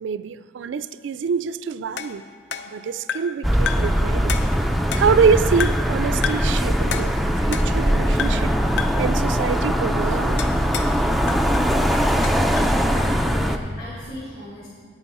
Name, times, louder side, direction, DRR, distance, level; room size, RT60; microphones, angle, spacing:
voice 1, 0.0-2.3 2.7-4.4 5.0-7.1 7.4-8.5 9.0-10.4, right 6 dB, 80° right, 0.3 m, -25 dB
sound 1, 2.0-3.4 3.7-4.0 4.3-5.3 5.6-5.9 6.2-6.6 6.9-7.9 8.2-8.5 8.8-9.1 10.4-11.0 11.3-12.8, left 7 dB, 65° left, 0.5 m, -31 dB
sound 2, 3.4-13.6, equal, ahead, 0.3 m, -21 dB
voice 2, 12.8-14.7, left 1 dB, 40° left, 2.4 m, -36 dB
9.9 x 9.5 x 4.2 m
head